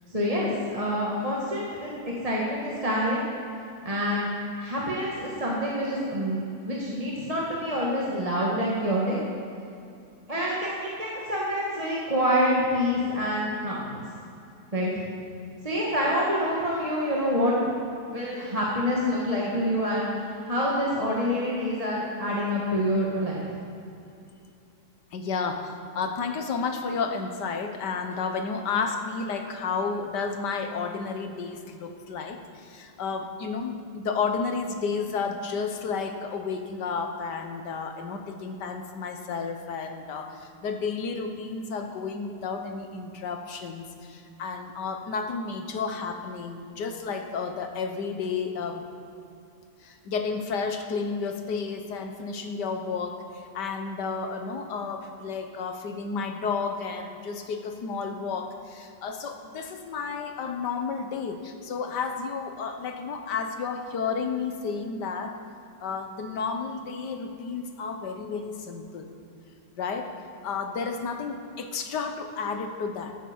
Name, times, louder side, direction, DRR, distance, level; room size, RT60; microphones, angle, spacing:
voice 1, 0.1-3.3 3.8-4.3 4.6-6.4 6.6-9.2 10.3-14.0 14.7-15.0 15.6-17.5 18.1-23.5, equal, 20° right, -5 dB, 1.7 m, -27 dB
voice 2, 25.1-48.8 49.8-65.4 65.8-69.1 69.8-70.1 70.4-73.2, left 5 dB, 80° left, 6 dB, 1.7 m, -32 dB
14.0 x 8.9 x 7.3 m, 2.6 s
omnidirectional pair, 1.8 m